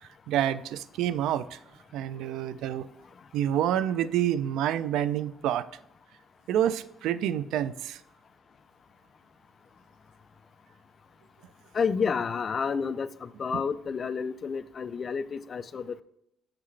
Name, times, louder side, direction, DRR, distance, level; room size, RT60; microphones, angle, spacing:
voice 1, 0.0-1.6 1.9-2.9 3.3-5.7 6.5-8.0 13.5-13.6, right 10 dB, 90° right, 16 dB, 0.3 m, -28 dB
voice 2, 11.7-16.0, left 5 dB, 35° left, 14 dB, 0.3 m, -30 dB
7.4 x 5.8 x 3.2 m, 0.79 s
cardioid pair, 140°, 0 cm